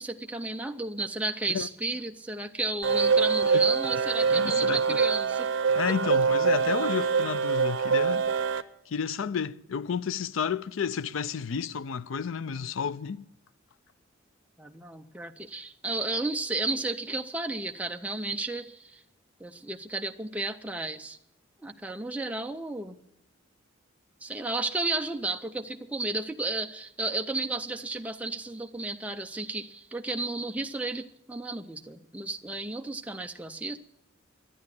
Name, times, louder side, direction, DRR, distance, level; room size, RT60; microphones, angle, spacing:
voice 1, 0.0-5.5 14.6-19.0 19.4-21.2 21.6-23.0 24.2-33.8, right 2 dB, 5° right, 0.5 m, -33 dB
sound 1, 2.8-8.6, right 5 dB, 75° right, 0.7 m, -25 dB
voice 2, 4.3-5.0 5.8-8.3 8.9-13.3, left 6 dB, 90° left, 0.5 m, -31 dB
12.0 x 9.6 x 9.7 m
head